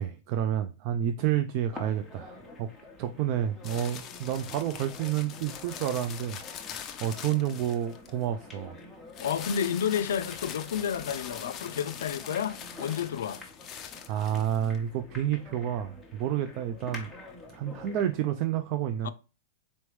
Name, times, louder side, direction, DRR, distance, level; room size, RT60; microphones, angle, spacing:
voice 1, 0.0-2.7 3.0-8.8 12.8-13.3 14.1-17.1 17.5-19.1, right 10 dB, 45° right, 0.3 m, -30 dB
sound 1, 1.7-18.2, left 2 dB, 5° left, 1.0 m, -48 dB
sound 2, 3.6-8.2 9.1-14.8, left 9 dB, 25° left, 0.5 m, -43 dB
voice 2, 9.2-13.4 19.0-19.1, left 8 dB, 85° left, 0.4 m, -30 dB
4.1 x 3.1 x 3.1 m
supercardioid pair, 145°, 0 cm